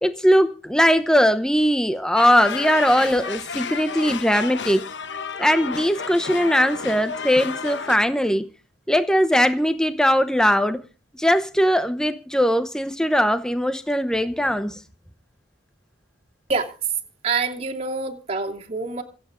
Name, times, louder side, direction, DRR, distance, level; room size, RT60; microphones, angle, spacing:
voice 1, 0.0-4.9 5.4-8.5 8.9-10.8 11.2-14.8, equal, 5° left, 0.8 m, -20 dB
sound 1, 2.2-8.0, left 5 dB, 65° left, 1.0 m, -32 dB
voice 2, 17.2-19.0, right 4 dB, 35° right, 2.6 m, -26 dB
26.5 x 8.9 x 3.8 m
head